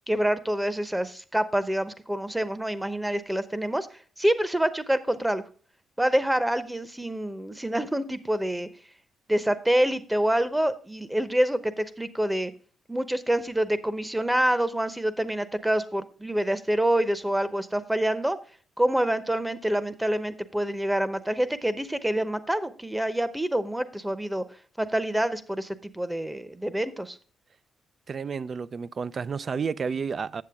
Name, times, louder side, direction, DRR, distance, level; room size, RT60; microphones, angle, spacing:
voice 1, 0.1-3.9 4.2-5.4 6.0-8.7 9.3-12.5 12.9-18.4 18.8-24.4 24.8-27.2, right 1 dB, 10° right, 0.8 m, -26 dB
voice 2, 28.1-30.4, right 5 dB, 45° right, 0.4 m, -31 dB
8.6 x 7.2 x 3.6 m
cardioid pair, 70°, 0 cm